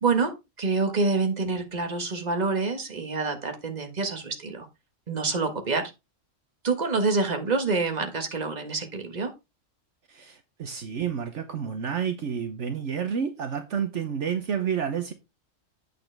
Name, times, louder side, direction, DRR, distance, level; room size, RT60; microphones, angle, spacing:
voice 1, 0.0-4.7 5.1-5.9 6.6-9.3, right 4 dB, 35° right, 1.6 m, -27 dB
voice 2, 10.1-15.1, right 7 dB, 65° right, 1.2 m, -30 dB
8.4 x 6.9 x 3.4 m
omnidirectional pair, 1.4 m